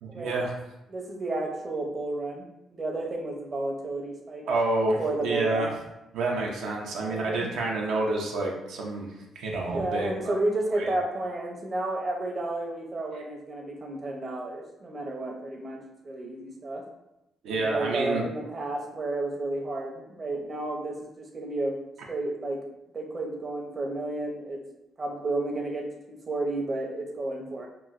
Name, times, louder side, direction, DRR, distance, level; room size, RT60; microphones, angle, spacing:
voice 1, 0.0-0.5 4.5-5.7 6.1-10.4 10.7-10.9 13.1-13.2 17.4-18.2, right 2 dB, 85° right, -1 dB, 0.4 m, -29 dB
voice 2, 0.9-4.5 4.8-5.7 7.0-7.5 9.7-16.8 17.5-21.8 22.1-22.6 22.9-24.6 25.0-27.7, right 2 dB, 35° right, 0 dB, 0.6 m, -32 dB
2.9 x 2.5 x 2.4 m, 0.90 s
cardioid pair, 90°, 0 cm